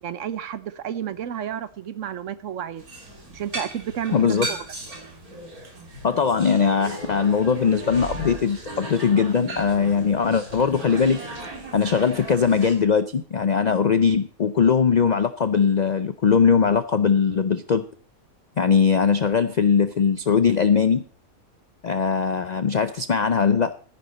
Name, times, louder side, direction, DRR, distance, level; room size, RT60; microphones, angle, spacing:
voice 1, 0.0-2.8 3.3-4.6, right 9 dB, 65° right, 14 dB, 1.0 m, -31 dB
sound 1, 2.8-12.7, right 2 dB, 85° right, 3.2 m, -36 dB
voice 2, 4.1-4.5 6.0-11.2 11.7-17.8 18.6-21.0 21.8-23.7, left 6 dB, 70° left, 12 dB, 0.4 m, -20 dB
13.5 x 10.0 x 4.1 m, 0.42 s
omnidirectional pair, 1.5 m